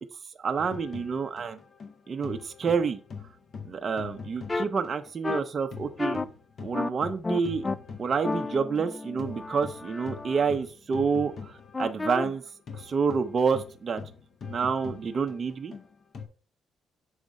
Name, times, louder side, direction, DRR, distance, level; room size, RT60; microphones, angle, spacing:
voice 1, 0.4-1.6 2.1-3.0 3.6-6.2 6.6-7.6 8.0-12.4 12.7-14.0 14.4-15.7, right 5 dB, 45° right, 6 dB, 0.7 m, -28 dB
sound 1, 0.6-5.4 5.7-16.3, left 5 dB, 50° left, 1.0 m, -43 dB
sound 2, 4.5-4.6 5.2-5.4 6.0-6.2 6.7-6.9 7.2-7.7 8.2-10.5 11.7-12.2, left 3 dB, 25° left, 0.4 m, -32 dB
6.4 x 3.5 x 5.2 m, 0.37 s
cardioid pair, 90°, 0 cm